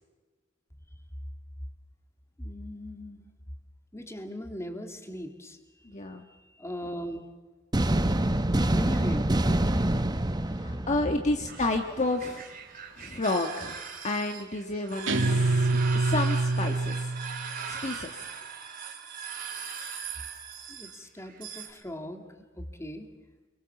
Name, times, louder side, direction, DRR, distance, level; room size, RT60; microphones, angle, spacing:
voice 1, 2.4-3.3 3.9-5.6 6.6-7.3 8.7-9.3 20.7-22.2 22.6-23.1, equal, 15° left, 5 dB, 2.6 m, -38 dB
voice 2, 5.8-6.3 10.4-12.5 13.0-13.8 14.0-15.7 15.9-17.1 17.7-18.1, left 2 dB, 40° left, 3 dB, 1.5 m, -30 dB
sound 1, 7.7-11.7, right 1 dB, 20° right, 0.9 m, -26 dB
sound 2, 11.5-21.7, right 6 dB, 45° right, 3.4 m, -40 dB
Guitar, 15.1-17.7, right 2 dB, 80° right, 2.4 m, -26 dB
28.0 x 23.5 x 7.2 m, 1.3 s
head